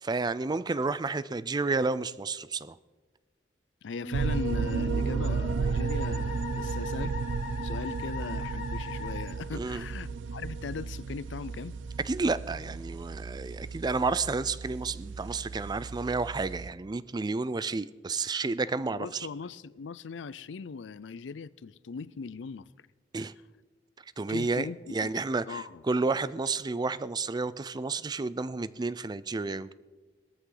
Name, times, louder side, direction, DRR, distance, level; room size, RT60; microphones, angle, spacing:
voice 1, 0.0-2.8 9.5-9.8 12.0-19.3 23.1-23.3 24.2-29.7, right 3 dB, 25° right, 0.4 m, -31 dB
voice 2, 3.8-7.2 7.6-11.8 18.9-22.7 23.2-23.3 24.3-25.1 25.5-25.8, left 5 dB, 75° left, 0.5 m, -39 dB
Musical instrument, 4.0-9.2, left 4 dB, 45° left, 2.5 m, -41 dB
sound 1, 4.1-16.7, right 4 dB, 80° right, 0.4 m, -33 dB
18.0 x 14.0 x 3.9 m
head